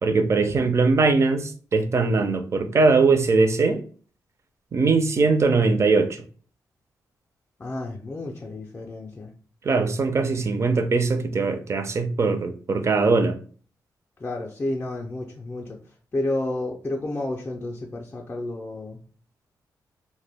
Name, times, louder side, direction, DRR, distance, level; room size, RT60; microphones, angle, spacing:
voice 1, 0.0-3.8 4.7-6.2 9.6-13.4, right 4 dB, 45° right, 0.4 m, -21 dB
voice 2, 7.6-9.3 14.2-15.8 16.1-19.0, left 2 dB, 25° left, 0.4 m, -31 dB
2.1 x 2.1 x 3.3 m
cardioid pair, 80°, 7 cm